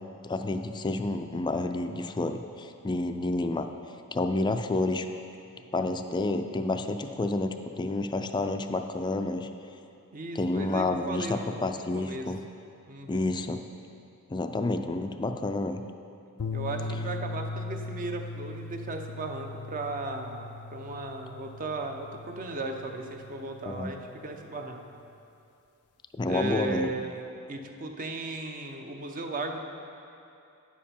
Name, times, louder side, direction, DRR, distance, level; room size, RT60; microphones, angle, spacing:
voice 1, 0.2-3.7 4.1-5.1 5.7-9.5 10.4-12.4 13.1-13.6 14.3-15.8 23.6-23.9 26.2-26.9, left 2 dB, 20° left, 7 dB, 0.3 m, -29 dB
voice 2, 10.1-12.3 12.9-13.3 16.5-24.8 26.2-29.7, right 2 dB, 40° right, 4 dB, 0.6 m, -36 dB
sound 1, 16.4-24.8, left 3 dB, 85° left, 0.5 m, -39 dB
9.7 x 7.3 x 4.3 m, 2.6 s
head